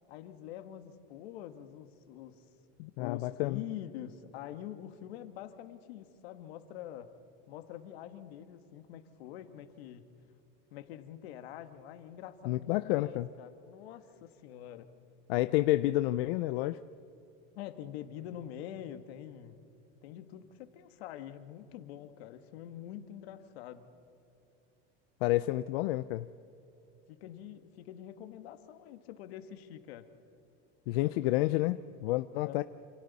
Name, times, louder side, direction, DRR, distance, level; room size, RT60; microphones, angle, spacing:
voice 1, 0.1-2.4 3.0-7.1 7.5-10.1 10.7-14.9 17.5-19.6 20.0-23.9 27.1-30.1 32.4-32.6, left 11 dB, 90° left, 9 dB, 1.6 m, -45 dB
voice 2, 2.8-3.6 12.5-13.3 15.3-16.8 25.2-26.3 30.9-32.6, left 17 dB, 75° left, 13 dB, 0.6 m, -29 dB
28.0 x 27.5 x 4.1 m, 2.9 s
cardioid pair, 165°, 30 cm